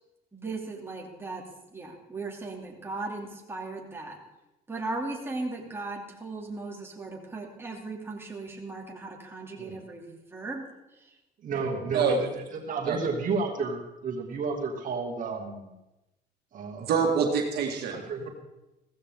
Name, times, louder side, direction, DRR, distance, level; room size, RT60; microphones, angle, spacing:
voice 1, 0.3-1.4 1.7-4.2 4.7-10.7, right 3 dB, 15° right, -1 dB, 2.9 m, -37 dB
voice 2, 11.4-12.3 12.6-15.7 16.5-16.9 17.9-18.3, right 4 dB, 50° right, 2 dB, 2.4 m, -31 dB
voice 3, 11.9-12.2 12.8-13.0 16.8-18.0, right 5 dB, 70° right, 1 dB, 2.2 m, -25 dB
16.0 x 15.0 x 3.8 m, 0.96 s
cardioid pair, 110°, 17 cm